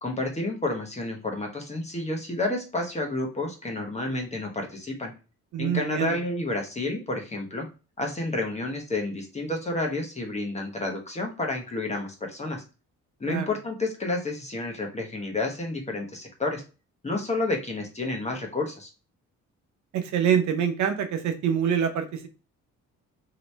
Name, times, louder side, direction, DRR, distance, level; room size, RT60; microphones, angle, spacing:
voice 1, 0.0-5.1 5.6-7.6 8.0-12.6 13.2-16.6 17.0-18.9, left 2 dB, 20° left, 1 dB, 1.0 m, -30 dB
voice 2, 5.5-6.2 13.3-13.5 19.9-22.3, right 8 dB, 70° right, 8 dB, 0.7 m, -25 dB
3.0 x 2.9 x 3.2 m, 0.33 s
cardioid pair, 90°, 30 cm